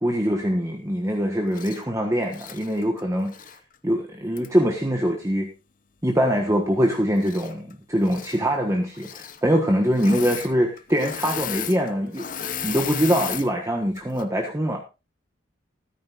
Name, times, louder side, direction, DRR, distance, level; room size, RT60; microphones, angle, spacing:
voice 1, 0.0-3.4 3.8-5.5 6.0-12.2 12.6-14.8, equal, 15° right, 1 dB, 1.3 m, -23 dB
Engine / Mechanisms, 1.5-1.8 2.3-3.6 4.4-4.5 7.2-7.7 8.0-8.4 8.9-9.4 9.9-10.5 10.8-13.5 14.0-14.2, left 8 dB, 45° left, 0.8 m, -34 dB
14.0 x 13.5 x 2.5 m, 0.27 s
head